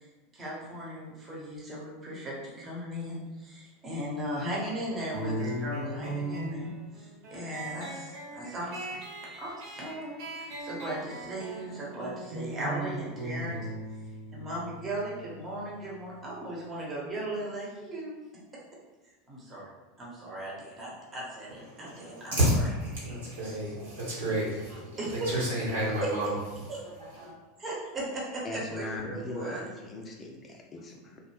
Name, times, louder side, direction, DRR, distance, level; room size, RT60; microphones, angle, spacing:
voice 1, 0.3-9.1 9.4-13.6 14.3-18.1 19.3-19.7 20.0-22.6 22.9-23.4 25.0-25.3 26.0-26.3 26.7-26.8 27.6-29.6, right 1 dB, 25° right, -5 dB, 1.0 m, -37 dB
sound 1, 5.1-16.2, right 1 dB, 55° right, 0.6 m, -38 dB
voice 2, 21.7-26.3 26.8-27.3, equal, 75° right, -7 dB, 1.2 m, -30 dB
voice 3, 28.4-31.2, left 2 dB, 30° left, 0 dB, 0.4 m, -39 dB
2.4 x 2.1 x 3.2 m, 1.2 s
figure-of-eight pair, 85°, 0 cm